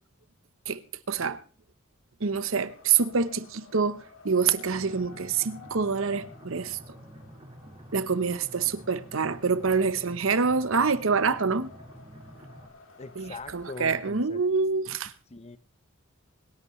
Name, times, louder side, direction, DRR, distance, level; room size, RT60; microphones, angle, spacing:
voice 1, 1.1-1.4 2.2-6.8 7.9-11.7 13.2-15.1, right 5 dB, 70° right, 0.9 m, -26 dB
Wind, 2.6-13.8, left 3 dB, 70° left, 3.5 m, -53 dB
sound 1, 4.7-12.7, equal, 30° right, 2.0 m, -48 dB
voice 2, 13.0-14.4 15.3-15.6, left 3 dB, 30° left, 0.8 m, -41 dB
25.5 x 11.0 x 3.2 m
head